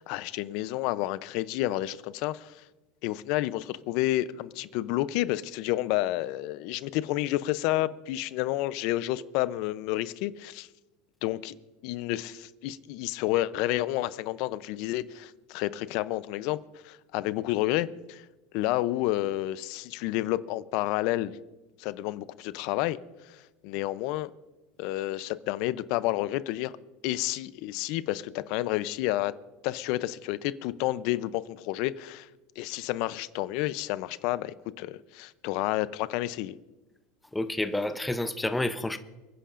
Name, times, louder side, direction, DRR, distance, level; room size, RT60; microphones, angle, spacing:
voice 1, 0.0-2.6 3.0-10.7 11.2-11.5 11.8-16.6 16.8-18.3 18.5-21.4 21.8-23.0 23.2-24.3 24.8-26.7 27.0-29.3 29.6-32.3 32.6-36.6, left 16 dB, 60° left, 0.6 m, -30 dB
voice 2, 37.3-39.0, left 2 dB, 5° left, 0.7 m, -29 dB
29.0 x 10.0 x 2.6 m
supercardioid pair, 120°, 0 cm